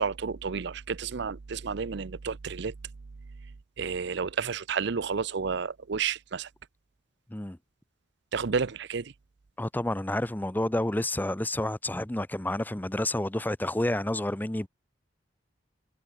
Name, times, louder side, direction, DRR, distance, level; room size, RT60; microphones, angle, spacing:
voice 1, 0.0-2.7 3.8-6.5 8.3-9.1, right 5 dB, 60° right, 0.6 m, -31 dB
voice 2, 9.6-14.7, left 1 dB, 10° left, 0.6 m, -29 dB
head